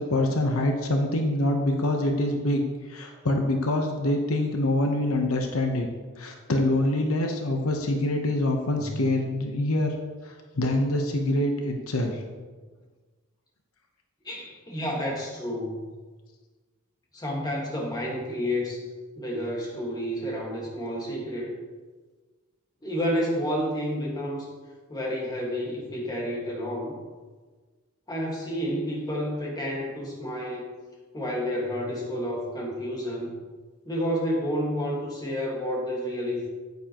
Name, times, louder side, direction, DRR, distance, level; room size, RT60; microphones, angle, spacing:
voice 1, 0.0-2.6 2.9-5.9 6.2-9.9 10.2-12.2, left 1 dB, 80° left, 3 dB, 1.0 m, -25 dB
voice 2, 14.3-15.9 17.1-18.8 19.2-21.5 22.8-24.5 24.9-27.0 28.1-30.7 31.1-33.4 33.9-36.5, equal, 20° left, -2 dB, 1.8 m, -30 dB
9.4 x 9.3 x 3.0 m, 1.4 s
head